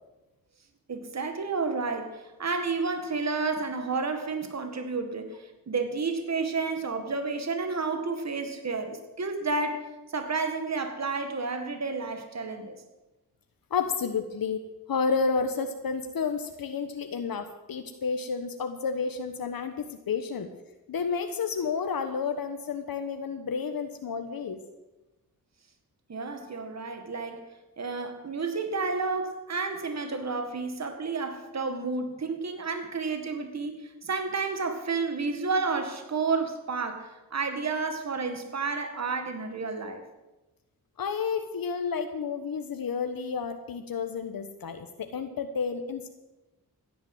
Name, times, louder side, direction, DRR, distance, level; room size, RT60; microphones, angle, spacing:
voice 1, 0.9-12.8 26.1-27.4 27.8-40.0, right 4 dB, 45° right, 7 dB, 2.0 m, -31 dB
voice 2, 13.7-14.6 14.9-20.5 20.9-24.6 41.0-46.1, left 5 dB, 75° left, 7 dB, 1.2 m, -31 dB
15.5 x 10.0 x 7.9 m, 1.0 s
wide cardioid pair, 90°, 36 cm